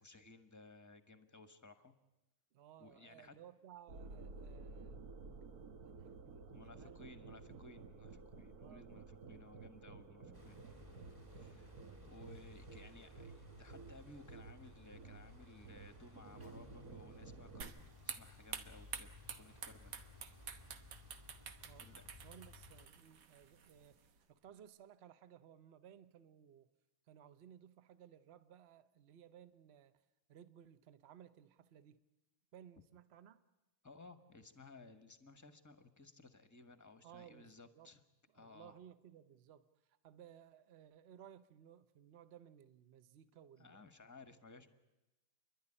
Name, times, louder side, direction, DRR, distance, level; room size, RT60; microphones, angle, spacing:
voice 1, 0.0-1.9 2.8-3.3 6.5-10.7 11.3-11.7 12.0-19.1 19.4-20.0 21.8-22.0 33.8-38.0 38.3-38.8 43.6-44.7, left 3 dB, 10° left, 10 dB, 1.0 m, -58 dB
voice 2, 2.5-5.1 5.8-7.5 8.6-8.9 9.3-9.5 21.6-24.0 24.3-26.7 27.1-30.0 30.3-32.0 32.5-33.4 37.0-37.9 38.3-43.9, right 9 dB, 45° right, 12 dB, 1.0 m, -60 dB
sound 1, 3.9-17.7, right 4 dB, 65° right, 1.6 m, -54 dB
sound 2, 10.3-22.9, left 3 dB, 15° right, 1.7 m, -59 dB
sound 3, 17.6-24.2, right 7 dB, 85° right, 1.8 m, -50 dB
30.0 x 11.5 x 10.0 m, 1.0 s
omnidirectional pair, 1.8 m